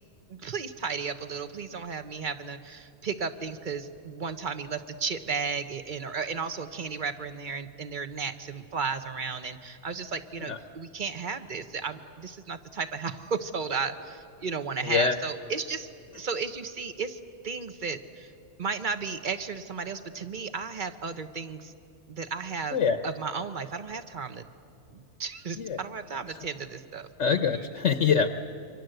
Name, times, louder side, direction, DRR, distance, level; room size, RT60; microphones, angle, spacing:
voice 1, 0.3-18.3 18.6-21.7 22.1-22.8 23.0-24.5 24.9-27.1 27.4-27.7, right 5 dB, 40° right, 10 dB, 1.1 m, -34 dB
voice 2, 14.8-15.2 22.7-23.0 25.6-25.8 26.3-26.4 27.2-28.3, left 6 dB, 60° left, 9 dB, 1.1 m, -25 dB
28.0 x 24.5 x 8.0 m, 2.6 s
omnidirectional pair, 1.5 m